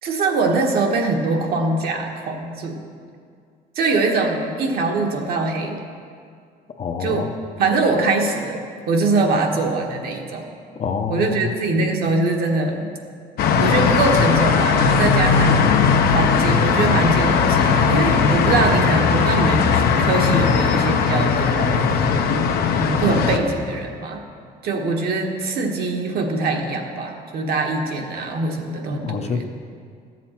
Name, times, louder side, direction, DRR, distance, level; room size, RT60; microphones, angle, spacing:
voice 1, 0.0-2.8 3.7-5.8 7.0-7.3 7.6-10.5 11.1-12.9 13.6-15.8 16.1-21.8 22.8-24.2 24.6-29.4, right 3 dB, 65° right, 2 dB, 1.4 m, -22 dB
voice 2, 6.8-7.3 10.8-11.5 29.0-29.5, left 5 dB, 40° left, 6 dB, 0.7 m, -26 dB
sound 1, 13.4-23.4, left 5 dB, 70° left, 0.8 m, -18 dB
13.0 x 7.5 x 4.4 m, 2.2 s
cardioid pair, 110°, 17 cm